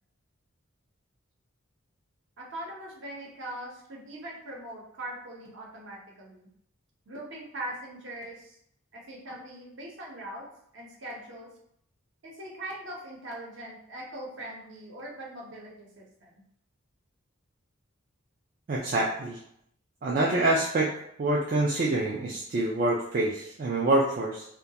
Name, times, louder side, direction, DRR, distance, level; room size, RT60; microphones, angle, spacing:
voice 1, 2.4-6.5 7.1-8.6 8.9-10.5 10.7-11.5 12.2-16.3, right 1 dB, 60° right, -3 dB, 0.7 m, -41 dB
voice 2, 18.7-19.4 20.0-20.9 21.2-24.5, right 2 dB, 40° right, -4 dB, 0.3 m, -26 dB
2.3 x 2.2 x 2.7 m, 0.72 s
head